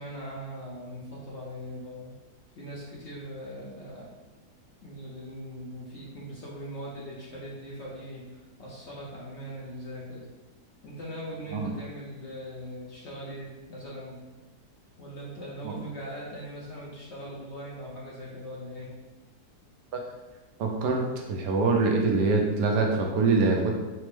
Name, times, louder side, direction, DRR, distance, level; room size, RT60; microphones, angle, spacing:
voice 1, 0.0-2.1 2.5-4.1 4.8-10.2 10.8-14.2 15.0-18.9, equal, 60° left, -6 dB, 0.7 m, -40 dB
voice 2, 20.6-21.0 21.3-23.7, right 3 dB, 85° right, 1 dB, 1.2 m, -24 dB
4.2 x 2.0 x 3.1 m, 1.2 s
omnidirectional pair, 1.8 m